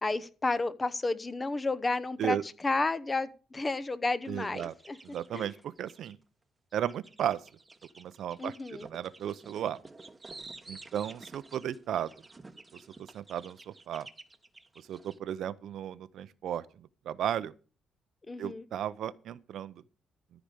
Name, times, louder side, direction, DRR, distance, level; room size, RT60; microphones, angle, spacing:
voice 1, 0.0-2.4 2.6-5.0 5.3-5.5 8.4-8.9 18.2-18.6, left 3 dB, 20° left, 0.9 m, -31 dB
sound 1, 4.2-6.1 6.7-15.2, right 3 dB, 20° right, 1.0 m, -51 dB
voice 2, 4.3-4.7 5.0-6.2 6.7-7.4 8.0-8.5 8.8-9.8 10.7-12.1 13.1-14.1 14.9-17.5 18.4-19.8, right 10 dB, 70° right, 0.7 m, -34 dB
13.5 x 5.0 x 8.2 m
cardioid pair, 110°, 0 cm